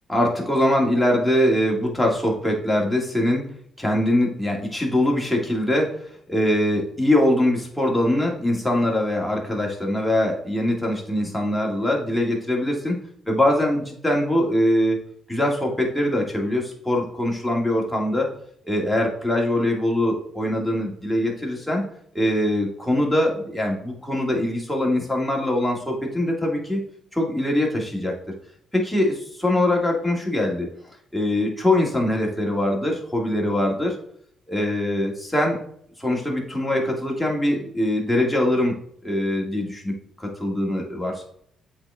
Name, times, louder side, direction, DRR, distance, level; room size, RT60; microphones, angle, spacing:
voice 1, 0.1-3.4 3.8-6.0 6.3-13.0 13.3-15.0 15.3-18.3 18.7-21.8 22.1-26.8 27.1-28.2 28.7-30.7 31.1-34.0 34.5-35.6 36.0-38.7 39.0-41.2, left 1 dB, 5° left, -1 dB, 2.1 m, -22 dB
7.7 x 4.0 x 3.5 m, 0.65 s
cardioid pair, 90°, 0 cm